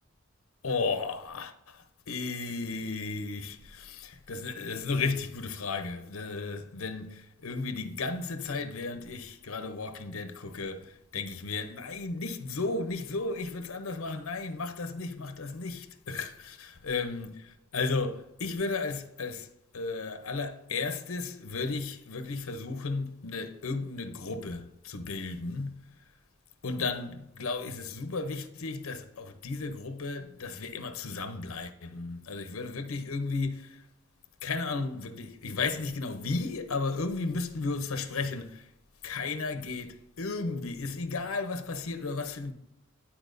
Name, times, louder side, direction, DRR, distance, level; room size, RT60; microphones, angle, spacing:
voice 1, 0.6-25.9 26.6-33.9 34.4-38.7 39.0-42.5, left 3 dB, 80° left, 0.7 m, -34 dB
11.5 x 4.3 x 2.6 m
head